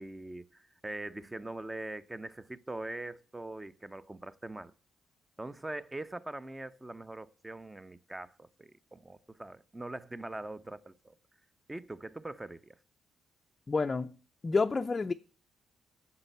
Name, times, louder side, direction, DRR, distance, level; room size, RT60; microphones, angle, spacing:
voice 1, 0.0-4.7 5.4-11.1 11.7-12.8, right 2 dB, 15° right, 0.7 m, -42 dB
voice 2, 13.7-14.2 14.4-15.1, left 4 dB, 30° left, 0.5 m, -29 dB
9.6 x 7.3 x 8.0 m
cardioid pair, 90°, 0 cm